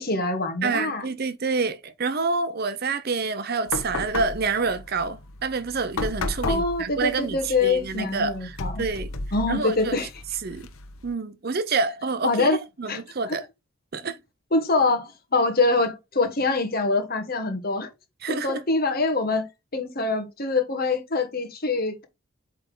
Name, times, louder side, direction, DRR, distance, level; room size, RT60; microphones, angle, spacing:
voice 1, 0.0-1.0 6.5-8.8 9.3-10.1 12.2-12.6 12.9-13.3 14.5-17.9 18.3-22.0, left 3 dB, 45° left, 1.3 m, -24 dB
voice 2, 0.6-9.1 9.5-10.0 10.4-10.7 11.0-13.4 13.9-14.2 18.2-18.6, right 4 dB, 45° right, 0.6 m, -28 dB
sound 1, 3.7-11.1, left 2 dB, 80° left, 1.0 m, -34 dB
8.1 x 3.5 x 3.8 m
head